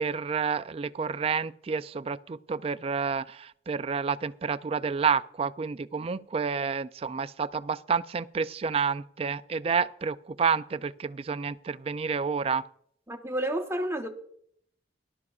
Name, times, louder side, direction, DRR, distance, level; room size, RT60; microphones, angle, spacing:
voice 1, 0.0-12.6, right 5 dB, 30° right, 0.3 m, -29 dB
voice 2, 13.1-14.1, right 1 dB, 15° right, 0.9 m, -30 dB
18.5 x 12.0 x 2.4 m
head